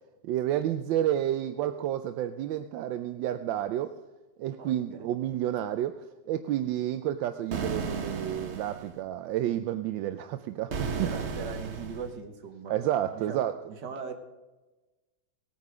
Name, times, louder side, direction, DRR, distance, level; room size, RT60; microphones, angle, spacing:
voice 1, 0.2-3.9 4.4-11.1 12.7-13.5, right 12 dB, 85° right, 10 dB, 1.3 m, -30 dB
voice 2, 4.6-5.1 11.0-12.7 13.1-13.4 13.7-14.1, right 5 dB, 65° right, 5 dB, 2.1 m, -40 dB
Camera Glitch, 7.5-8.9 10.7-12.1, right 4 dB, 45° right, 1.0 m, -34 dB
17.5 x 9.4 x 4.9 m, 1.1 s
omnidirectional pair, 2.0 m